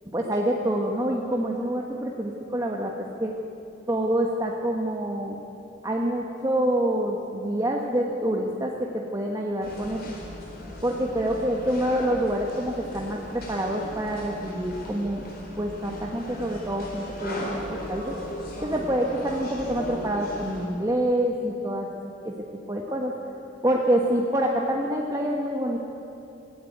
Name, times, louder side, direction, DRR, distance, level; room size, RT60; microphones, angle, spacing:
voice 1, 0.1-3.3 3.9-5.4 5.8-10.0 10.8-15.2 15.6-18.2 18.6-22.3 22.7-23.1 23.6-25.8, right 1 dB, 20° right, -1 dB, 1.4 m, -26 dB
sound 1, 9.6-20.7, left 1 dB, 55° left, 4.2 m, -37 dB
17.5 x 17.0 x 9.4 m, 2.7 s
head